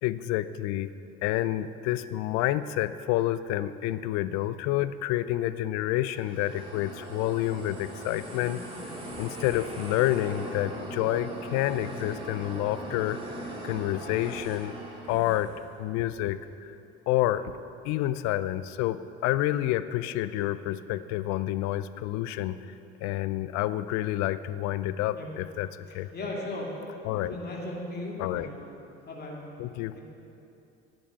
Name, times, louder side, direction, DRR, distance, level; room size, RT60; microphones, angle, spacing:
voice 1, 0.0-0.9 1.2-8.6 9.2-13.2 13.6-14.7 15.1-15.5 15.8-16.7 17.1-17.5 17.8-22.7 23.0-26.1 27.0-27.3 28.2-28.5 29.6-30.0, left 14 dB, 60° left, 14 dB, 0.6 m, -29 dB
sound 1, 5.9-15.6, right 1 dB, 15° right, 2.9 m, -40 dB
voice 2, 26.1-26.7 27.1-28.5 29.1-29.4 29.9-30.0, left 2 dB, 30° left, -2 dB, 2.5 m, -36 dB
10.5 x 7.1 x 8.3 m, 2.7 s
hypercardioid pair, 65°, 31 cm